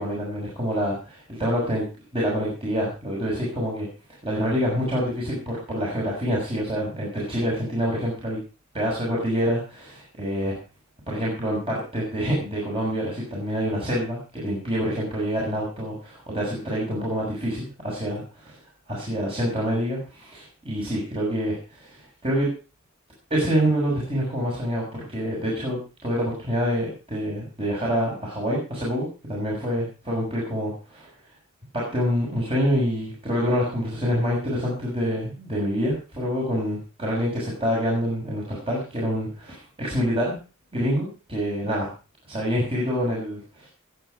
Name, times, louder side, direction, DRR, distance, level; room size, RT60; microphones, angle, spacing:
voice 1, 0.0-1.8 2.1-3.9 4.2-8.4 8.7-10.5 11.1-18.5 18.9-22.5 23.3-31.1 31.7-40.4 40.7-41.9 42.3-43.7, equal, 25° right, -4 dB, 6.2 m, -26 dB
20.0 x 8.9 x 5.0 m, 0.34 s
head